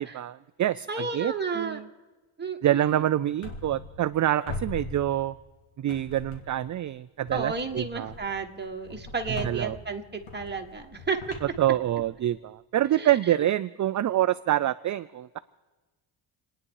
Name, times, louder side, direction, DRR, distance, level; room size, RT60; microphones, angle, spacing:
voice 1, 0.0-1.9 2.6-5.4 5.8-8.1 9.3-9.8 11.6-15.4, right 12 dB, 40° right, 14 dB, 0.4 m, -26 dB
voice 2, 0.9-1.8 2.4-3.0 7.3-11.4 13.0-13.1, right 4 dB, 20° right, 3 dB, 1.9 m, -32 dB
sound 1, 3.4-4.2 4.5-5.5 5.9-6.7 7.3-12.4, left 3 dB, 75° left, 2.9 m, -41 dB
28.5 x 10.0 x 4.8 m, 1.2 s
cardioid pair, 100°, 50 cm